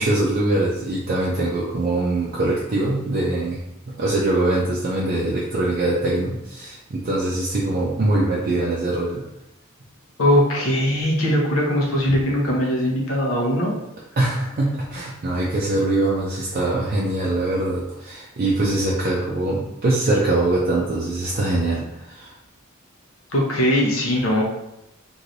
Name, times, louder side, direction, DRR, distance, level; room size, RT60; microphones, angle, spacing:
voice 1, 0.0-3.6 3.9-9.2 14.2-22.3, right 2 dB, 45° right, -5 dB, 0.4 m, -23 dB
voice 2, 10.2-13.7 23.3-24.4, equal, 80° left, -2 dB, 0.8 m, -20 dB
3.1 x 2.6 x 2.6 m, 0.86 s
head